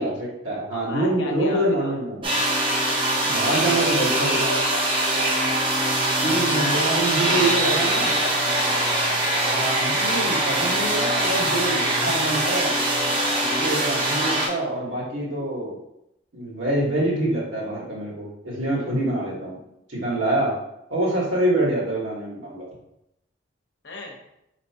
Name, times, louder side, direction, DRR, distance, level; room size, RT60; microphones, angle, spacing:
voice 1, 0.0-2.4 3.2-4.5 6.2-8.1 9.5-12.7 13.5-15.8 16.3-19.6 19.9-20.5 20.9-22.7, right 1 dB, 85° right, -6 dB, 1.5 m, -25 dB
voice 2, 0.7-1.9 4.5-4.8 6.2-7.0 7.3-9.0 23.8-24.2, left 2 dB, 65° left, -1 dB, 0.9 m, -35 dB
sound 1, 2.2-14.5, right 1 dB, 25° right, 0.7 m, -22 dB
4.4 x 3.0 x 2.8 m, 0.83 s
head